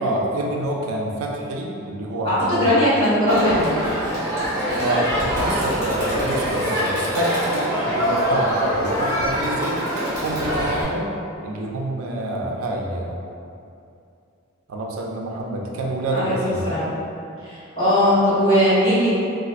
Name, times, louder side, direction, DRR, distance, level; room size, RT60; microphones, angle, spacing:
voice 1, 0.0-2.6 4.8-9.8 10.2-11.1 11.4-13.2 14.7-16.7, right 1 dB, 80° right, -1 dB, 0.4 m, -27 dB
voice 2, 2.2-3.8 16.1-16.9 17.4-19.1, equal, 25° left, -13 dB, 1.4 m, -19 dB
Crowd, 3.3-10.8, equal, 20° right, 1.1 m, -24 dB
4.0 x 2.4 x 2.4 m, 2.5 s
head